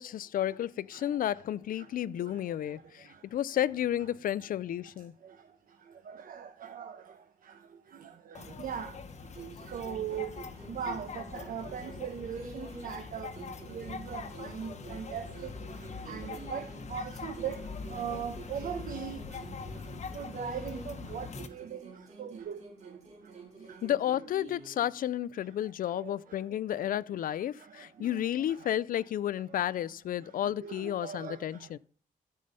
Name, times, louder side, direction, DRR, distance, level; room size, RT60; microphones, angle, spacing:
voice 1, 0.0-5.1 23.8-31.8, left 11 dB, 80° left, 0.4 m, -32 dB
voice 2, 6.3-7.0 8.6-8.9 9.7-10.3 10.7-13.3 13.7-15.5 16.1-17.6 17.9-19.2 20.1-21.8 22.2-22.6 26.0-26.1 30.6-31.4, right 8 dB, 80° right, 1.0 m, -38 dB
sound 1, 8.4-21.5, left 5 dB, 55° left, 1.1 m, -43 dB
sound 2, 9.3-13.0 13.3-17.0 17.3-21.0 21.3-25.0, right 4 dB, 50° right, 3.7 m, -49 dB
13.0 x 5.5 x 5.3 m
wide cardioid pair, 125°, 14 cm